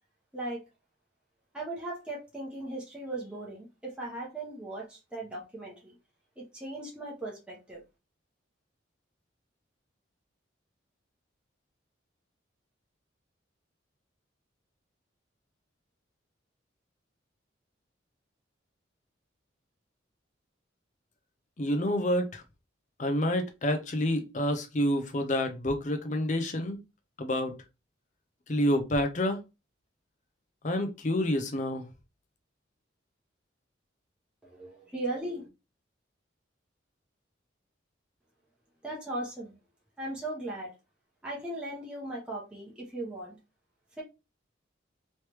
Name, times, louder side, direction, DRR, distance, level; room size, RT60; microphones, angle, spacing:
voice 1, 1.5-5.9 6.4-7.8 34.4-35.5 38.8-39.5 40.0-40.7 41.2-43.4 44.0-44.1, right 2 dB, 5° right, 0.9 m, -38 dB
voice 2, 21.6-22.4 23.0-26.8 27.2-27.5 28.5-29.4 30.6-31.9, left 1 dB, 40° left, 0.6 m, -28 dB
3.2 x 3.1 x 3.0 m
head